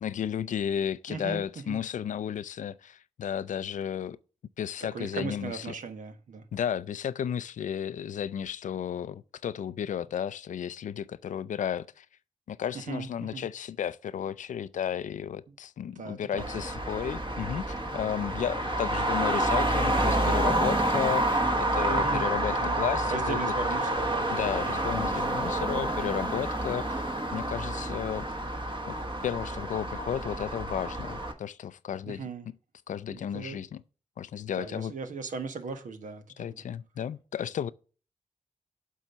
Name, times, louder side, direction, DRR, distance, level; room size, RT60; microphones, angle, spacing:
voice 1, 0.0-4.2 4.6-5.7 6.5-12.1 12.5-17.6 17.9-23.5 24.3-28.3 28.8-29.0 29.2-32.2 32.9-33.8 34.2-34.9 36.4-37.7, left 9 dB, 80° left, 0.4 m, -33 dB
voice 2, 1.1-1.8 4.9-6.4 12.7-13.4 16.0-16.5 21.9-22.8 23.0-24.3 24.5-25.5 32.1-32.5 33.1-33.6 34.6-36.6, right 5 dB, 85° right, 1.1 m, -38 dB
Traffic noise roadway noise, 16.4-31.3, right 1 dB, 40° right, 1.3 m, -29 dB
7.4 x 3.9 x 5.4 m
cardioid pair, 50°, 13 cm